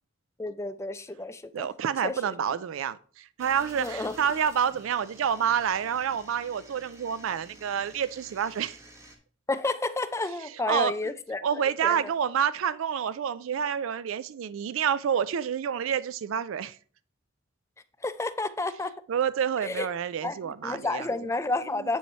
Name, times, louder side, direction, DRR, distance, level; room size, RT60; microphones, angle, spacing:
voice 1, 0.4-1.7 2.0-2.3 3.8-4.1 9.5-12.1 18.0-18.9 19.6-19.9 20.2-22.0, left 2 dB, 15° left, 0.4 m, -31 dB
voice 2, 1.5-8.8 10.7-10.9 11.4-16.8 19.1-21.3 21.8-21.9, right 8 dB, 70° right, 0.4 m, -28 dB
sound 1, 3.4-9.2, right 1 dB, 15° right, 1.2 m, -50 dB
9.2 x 3.1 x 5.4 m
head